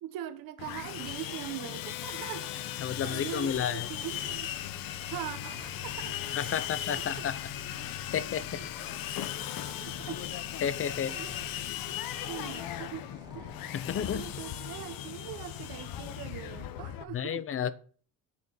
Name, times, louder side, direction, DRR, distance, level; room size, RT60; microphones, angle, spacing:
voice 1, 0.0-4.5 5.1-6.2 6.4-7.2 8.5-8.7 9.2-9.3 9.7-10.2 10.6-10.8 11.1-11.3 12.3-13.1 13.3-13.5 14.0-17.5, right 12 dB, 70° right, 1.3 m, -42 dB
Sawing, 0.6-17.0, left 11 dB, 70° left, 1.2 m, -37 dB
voice 2, 2.8-3.9 6.4-7.4 8.1-8.6 10.6-11.2 13.7-14.3 17.1-17.7, left 8 dB, 40° left, 0.7 m, -31 dB
sound 1, 3.5-14.5, right 1 dB, 10° right, 1.3 m, -53 dB
8.4 x 6.4 x 7.1 m
cardioid pair, 140°, 35 cm